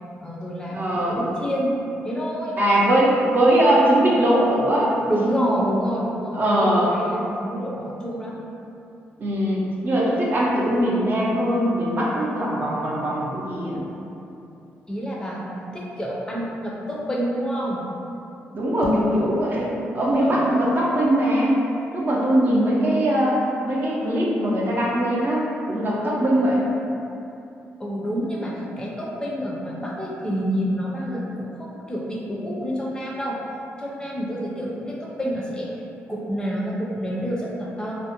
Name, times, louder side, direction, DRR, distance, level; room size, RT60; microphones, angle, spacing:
voice 1, 0.2-1.7 2.0-2.6 2.9-3.0 5.1-6.5 6.9-8.4 14.9-17.9 20.2-20.4 27.8-33.4 33.8-35.7 36.1-37.9, equal, 15° left, -4 dB, 0.5 m, -28 dB
voice 2, 0.7-1.2 2.6-4.9 5.2-5.5 6.3-6.9 9.2-13.8 18.5-21.6 21.9-26.7, right 1 dB, 40° right, -5 dB, 0.5 m, -21 dB
sound 1, 18.7-19.2, left 1 dB, 80° left, 0.5 m, -24 dB
2.5 x 2.0 x 2.8 m, 2.8 s
cardioid pair, 75°, 5 cm